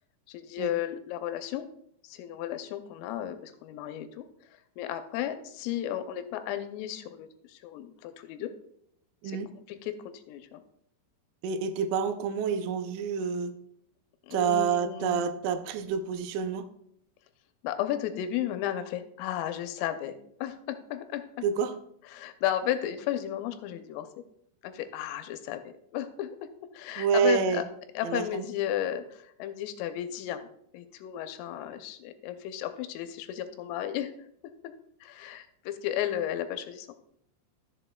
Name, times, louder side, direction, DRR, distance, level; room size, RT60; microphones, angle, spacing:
voice 1, 0.3-1.7 2.0-4.3 4.8-8.5 9.2-9.4 9.7-10.6 14.3-15.3 17.6-21.2 22.1-24.1 24.6-25.6 25.9-26.5 26.7-27.6 28.0-30.5 30.7-34.1 34.6-34.7 35.0-36.9, left 11 dB, 85° left, 9 dB, 3.1 m, -34 dB
voice 2, 11.4-13.6 14.3-16.7 21.4-21.8 27.0-27.6 28.0-28.4, right 6 dB, 85° right, 9 dB, 3.4 m, -28 dB
13.0 x 7.1 x 2.2 m, 0.72 s
omnidirectional pair, 6.0 m